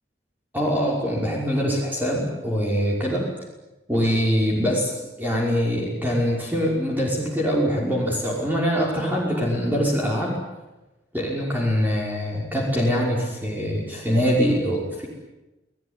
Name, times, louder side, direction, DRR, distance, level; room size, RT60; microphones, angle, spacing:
voice 1, 0.5-3.3 3.9-4.9 5.2-10.4 11.1-15.1, equal, 10° right, -3 dB, 5.8 m, -23 dB
29.0 x 18.5 x 9.9 m, 1.0 s
head